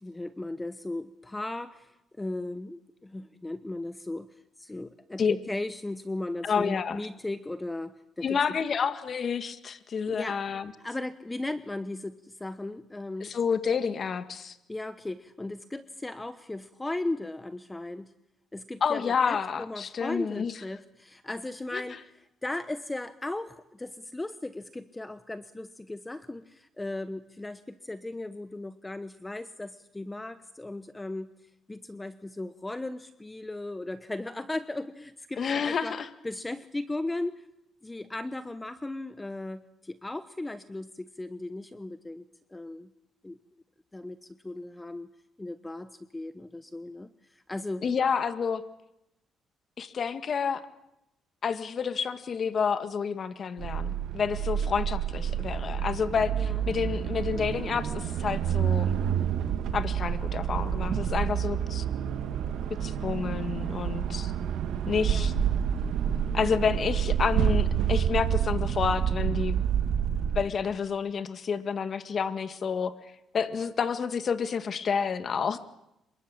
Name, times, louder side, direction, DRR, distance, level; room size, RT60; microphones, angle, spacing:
voice 1, 0.0-8.6 10.1-10.4 10.8-13.4 14.7-18.1 18.5-31.3 31.7-36.0 36.2-37.5 37.8-42.2 42.5-42.9 43.2-43.4 43.9-45.1 45.4-47.8 56.4-56.6 65.1-65.3, left 2 dB, 15° left, 12 dB, 1.1 m, -37 dB
voice 2, 6.4-7.0 8.2-10.7 13.2-14.6 18.8-20.5 21.7-21.8 35.4-36.1 47.8-48.6 49.8-50.6 51.4-59.0 59.7-61.8 62.8-64.3 64.9-65.3 66.3-69.6 70.4-72.9 73.3-75.6, left 6 dB, 50° left, 11 dB, 1.8 m, -29 dB
sound 1, 53.6-70.4, right 9 dB, 80° right, 2.0 m, -28 dB
27.0 x 23.5 x 8.8 m, 0.84 s
cardioid pair, 90°, 0 cm